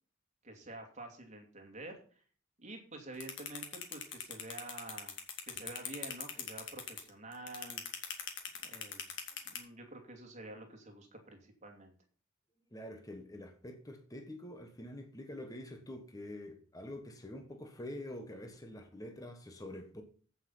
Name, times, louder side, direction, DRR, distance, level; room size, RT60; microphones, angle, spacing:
voice 1, 0.4-2.2 2.6-7.8 8.6-9.1 9.4-11.9, right 2 dB, 35° right, 2.6 m, -49 dB
sound 1, 3.2-9.6, left 8 dB, 60° left, 2.0 m, -40 dB
voice 2, 12.7-20.0, left 1 dB, 20° left, 1.2 m, -46 dB
15.0 x 5.7 x 5.6 m
head